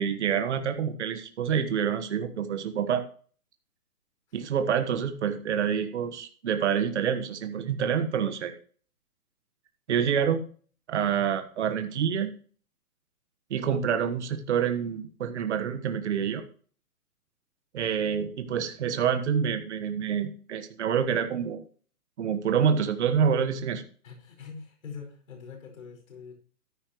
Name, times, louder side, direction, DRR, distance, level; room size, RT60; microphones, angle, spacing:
voice 1, 0.0-3.0 4.3-8.5 9.9-10.4 10.9-12.3 13.5-16.4 17.7-21.6 22.2-23.8, right 7 dB, 45° right, 7 dB, 1.4 m, -27 dB
voice 2, 24.0-26.3, left 5 dB, 55° left, 3 dB, 5.0 m, -44 dB
13.5 x 9.8 x 3.1 m, 0.43 s
hypercardioid pair, 160°, 46 cm